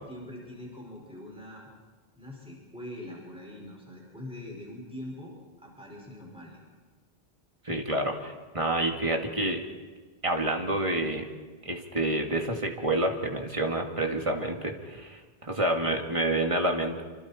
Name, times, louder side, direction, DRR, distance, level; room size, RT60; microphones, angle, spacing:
voice 1, 0.1-1.7 2.2-6.6, left 1 dB, 5° right, -2 dB, 5.2 m, -43 dB
voice 2, 7.7-9.6 10.2-11.2 11.6-17.0, right 1 dB, 30° right, 2 dB, 2.3 m, -28 dB
26.5 x 26.5 x 4.4 m, 1.4 s
omnidirectional pair, 1.1 m